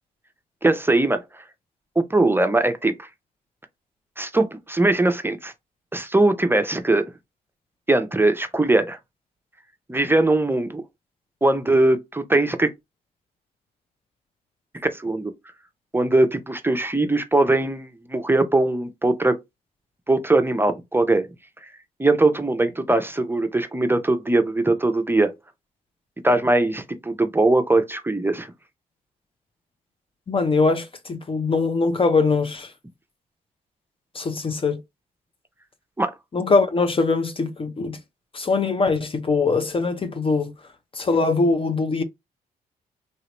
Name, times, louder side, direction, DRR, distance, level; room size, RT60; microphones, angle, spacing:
voice 1, 0.6-1.4 2.0-3.1 4.2-5.5 5.9-7.1 7.9-9.0 9.9-10.8 11.4-12.7 14.9-15.3 15.9-19.4 20.1-21.3 22.0-25.3 26.2-28.5 36.0-36.1, right 2 dB, 15° right, 0.6 m, -21 dB
voice 2, 30.3-32.7 34.1-34.8 36.3-38.0 38.3-40.5 40.9-42.0, left 4 dB, 30° left, 0.6 m, -22 dB
3.0 x 2.9 x 2.9 m
supercardioid pair, 60°, 17 cm